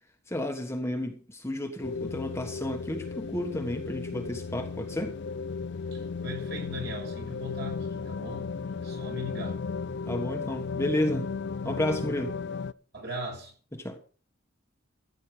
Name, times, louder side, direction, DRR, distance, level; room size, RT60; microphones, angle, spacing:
voice 1, 0.3-5.1 10.0-11.3 11.6-12.4 13.7-14.0, left 1 dB, 15° left, 1.4 m, -31 dB
sound 1, 1.8-12.7, left 5 dB, 60° left, 0.5 m, -35 dB
voice 2, 5.9-8.5 8.8-9.7 12.9-13.5, left 1 dB, 60° right, 6.7 m, -38 dB
15.0 x 9.1 x 5.0 m
head